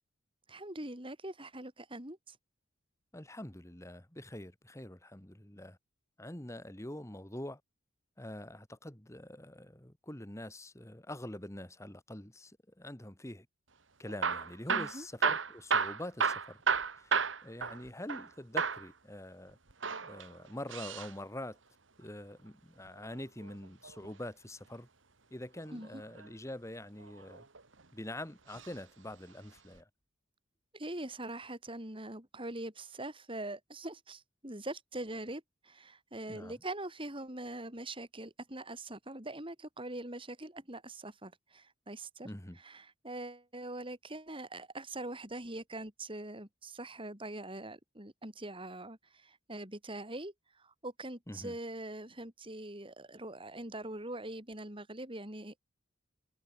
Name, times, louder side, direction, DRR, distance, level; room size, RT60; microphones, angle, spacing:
voice 1, 0.5-2.4 14.7-15.1 25.7-26.0 30.7-42.3 42.6-55.6, right 1 dB, 25° right, 6.0 m, -43 dB
voice 2, 3.1-5.8 6.2-7.6 8.2-13.5 14.0-16.6 17.0-17.1 17.4-19.6 20.0-21.6 22.0-24.9 25.3-27.4 27.9-29.9 36.3-36.5 42.2-42.6 51.3-51.6, left 1 dB, 15° left, 1.9 m, -45 dB
Hammer / Drill, 14.1-18.3 18.6-18.9 19.7-21.1 22.9-24.1 25.8-26.3 27.0-27.8 28.5-28.8 29.1-29.2 29.8-29.9, right 5 dB, 75° right, 2.1 m, -33 dB
head